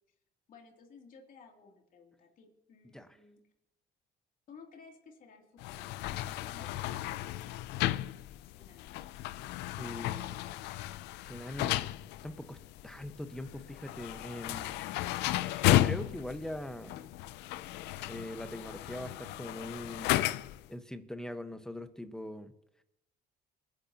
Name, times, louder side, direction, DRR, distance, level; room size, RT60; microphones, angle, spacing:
voice 1, 0.5-3.4 4.5-6.0 6.3-9.1, left 5 dB, 55° left, 1 dB, 2.8 m, -57 dB
sound 1, 5.6-20.7, left 15 dB, 90° left, 0.5 m, -34 dB
voice 2, 9.8-10.4 11.3-11.9 12.2-14.8 15.6-17.1 18.1-20.2 20.7-22.5, left 1 dB, 5° left, 8 dB, 1.2 m, -42 dB
29.5 x 10.5 x 2.9 m, 0.80 s
cardioid pair, 110°, 17 cm